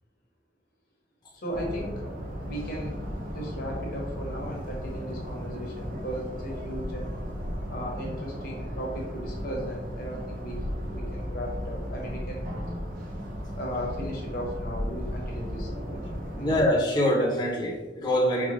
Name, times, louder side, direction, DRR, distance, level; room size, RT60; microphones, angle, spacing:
voice 1, 1.3-3.0 3.3-7.1 7.7-10.6 10.9-12.5 13.5-16.5, equal, 55° left, -1 dB, 0.8 m, -36 dB
sound 1, 1.5-16.7, equal, 50° right, 0.7 m, -35 dB
voice 2, 16.3-18.5, equal, 25° left, -4 dB, 0.6 m, -24 dB
4.8 x 2.2 x 3.0 m, 1.2 s
head